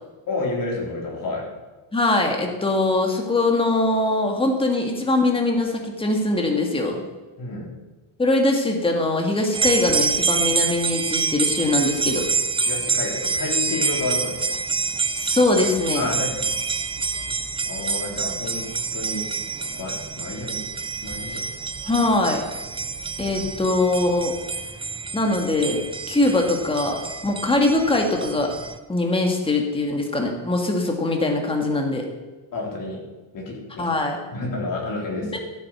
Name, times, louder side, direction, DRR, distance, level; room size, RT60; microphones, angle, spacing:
voice 1, 0.3-1.5 7.4-7.7 12.6-14.6 15.9-16.5 17.6-19.3 19.8-20.6 21.0-21.6 32.5-33.0 33.3-33.9 34.3-35.4, left 3 dB, 40° left, -2 dB, 4.0 m, -30 dB
voice 2, 1.9-7.0 8.2-12.3 15.2-16.0 21.3-21.4 21.9-22.4 23.2-24.3 25.1-25.8 26.1-28.5 28.9-32.0 33.8-34.2 35.3-35.4, left 2 dB, 10° left, 2 dB, 1.7 m, -22 dB
sound 1, 9.5-28.8, right 4 dB, 10° right, 0.4 m, -27 dB
14.0 x 8.9 x 6.1 m, 1.2 s
cardioid pair, 155°, 50 cm